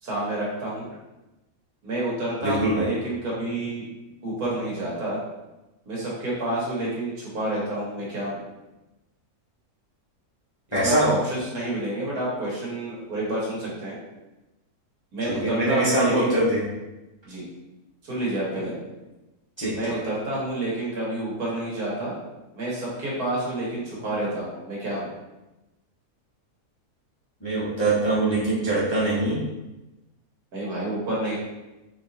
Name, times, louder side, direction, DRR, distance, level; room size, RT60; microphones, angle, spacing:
voice 1, 0.0-0.9 1.8-3.9 4.2-5.2 5.9-8.4 10.8-14.0 15.1-16.3 17.2-17.5 18.0-18.8 19.7-22.2 22.5-25.1 30.5-31.4, right 1 dB, 75° right, -6 dB, 1.8 m, -29 dB
voice 2, 2.4-2.9 10.7-11.1 15.3-16.6 19.6-20.0 27.4-29.4, right 1 dB, 25° left, -9 dB, 0.8 m, -23 dB
4.1 x 3.4 x 2.6 m, 1.0 s
omnidirectional pair, 1.6 m